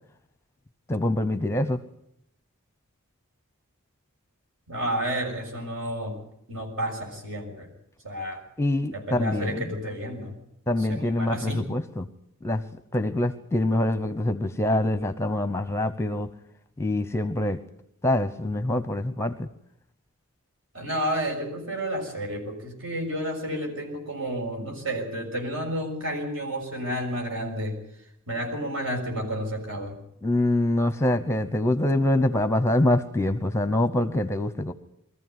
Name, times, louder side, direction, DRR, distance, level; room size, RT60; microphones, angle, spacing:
voice 1, 0.9-1.8 8.6-9.7 10.7-12.1 12.4-12.6 12.9-16.3 16.8-17.6 18.0-19.5 30.2-34.7, left 1 dB, 10° left, 11 dB, 0.8 m, -25 dB
voice 2, 4.7-6.2 6.5-7.7 8.0-8.4 8.9-10.4 10.8-11.7 20.7-27.8 28.3-30.0, equal, 60° right, 2 dB, 6.5 m, -31 dB
22.0 x 14.5 x 9.4 m, 0.74 s
head